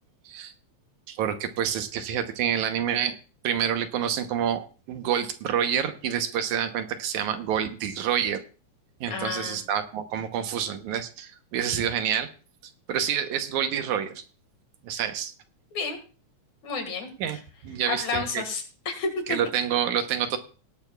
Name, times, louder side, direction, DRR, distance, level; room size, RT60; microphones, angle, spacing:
voice 1, 1.1-3.2 3.4-8.4 9.0-12.3 12.9-14.2 14.8-15.3 17.2-18.4 19.3-20.4, right 9 dB, 75° right, 8 dB, 2.4 m, -28 dB
voice 2, 9.1-9.6 15.7-16.0 16.6-17.1 17.9-19.4, left 4 dB, 65° left, 5 dB, 3.2 m, -31 dB
18.5 x 11.0 x 2.4 m, 0.36 s
omnidirectional pair, 3.5 m